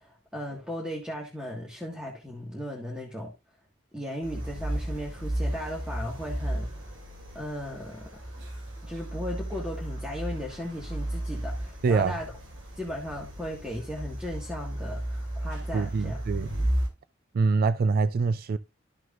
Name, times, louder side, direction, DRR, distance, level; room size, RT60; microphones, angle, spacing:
voice 1, 0.0-3.3 3.9-6.7 7.3-8.1 8.8-12.3 12.8-16.2, equal, 5° right, 1.6 m, -36 dB
sound 1, 4.2-16.9, right 1 dB, 75° right, 2.8 m, -34 dB
voice 2, 11.8-12.2 15.7-16.5 17.3-18.6, right 4 dB, 50° right, 0.4 m, -24 dB
13.0 x 6.2 x 2.5 m
head